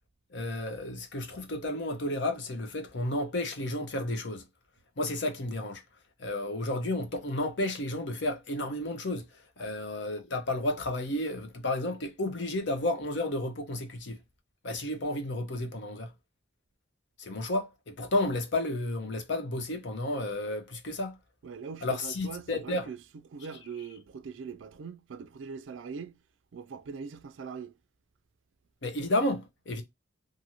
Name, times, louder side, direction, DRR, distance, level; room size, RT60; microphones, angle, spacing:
voice 1, 0.3-4.4 5.0-5.8 6.2-14.2 14.6-16.1 17.2-21.2 21.8-22.9 28.8-29.8, left 1 dB, 65° left, 0.7 m, -32 dB
voice 2, 21.4-26.2 26.5-27.7, right 5 dB, 75° right, 0.4 m, -42 dB
2.9 x 2.6 x 2.6 m
head